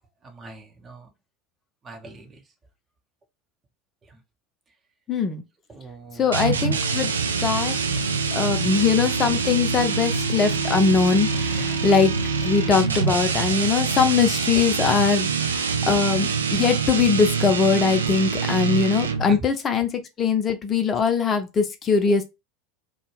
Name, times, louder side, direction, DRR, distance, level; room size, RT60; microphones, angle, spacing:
voice 1, 0.2-1.1 1.8-2.3 5.7-6.3 8.5-8.6 19.3-19.4, right 2 dB, 25° right, 0.7 m, -41 dB
voice 2, 5.1-5.4 6.2-7.1 7.4-7.8 8.3-12.1 12.4-22.2, left 5 dB, 30° left, 0.5 m, -21 dB
sound 1, 6.3-19.4, right 5 dB, 75° right, 0.4 m, -25 dB
2.2 x 2.1 x 3.1 m
figure-of-eight pair, 75°, 0 cm